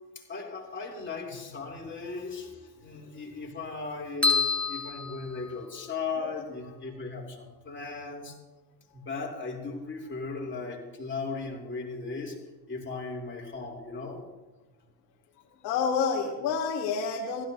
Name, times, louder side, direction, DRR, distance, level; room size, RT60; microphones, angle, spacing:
voice 1, 0.3-8.4 8.9-12.4 12.7-14.2, left 4 dB, 25° left, -2 dB, 3.1 m, -37 dB
sound 1, 4.2-6.0, left 4 dB, ahead, 0.8 m, -28 dB
voice 2, 15.6-17.5, left 5 dB, 85° left, 3 dB, 1.3 m, -29 dB
15.5 x 13.0 x 2.7 m, 1.1 s
supercardioid pair, 80°, 49 cm